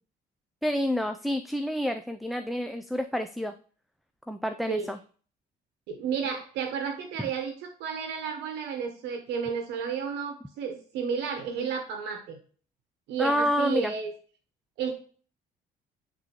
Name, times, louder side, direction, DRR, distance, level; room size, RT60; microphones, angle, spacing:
voice 1, 0.6-3.5 4.3-5.0 13.2-13.9, equal, ahead, 8 dB, 0.3 m, -28 dB
voice 2, 5.9-12.4 13.1-14.1 14.8-14.9, right 6 dB, 85° right, 5 dB, 0.9 m, -32 dB
9.5 x 3.7 x 3.0 m, 0.42 s
cardioid pair, 110°, 17 cm